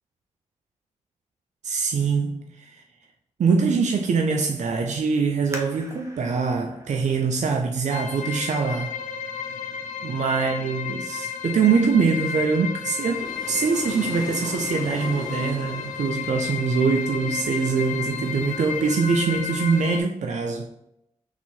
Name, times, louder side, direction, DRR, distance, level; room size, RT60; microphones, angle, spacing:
voice 1, 1.6-2.8 3.4-8.9 10.0-20.7, right 5 dB, 65° right, 0.5 m, -23 dB
sound 1, 5.5-8.9 9.5-9.6 10.2-10.6 11.0-11.1, right 1 dB, 25° right, 1.2 m, -43 dB
sound 2, 7.9-20.0, left 7 dB, 80° left, 0.5 m, -32 dB
sound 3, 13.1-19.9, left 2 dB, 30° left, 1.2 m, -40 dB
4.0 x 2.8 x 4.4 m
cardioid pair, 45°, 13 cm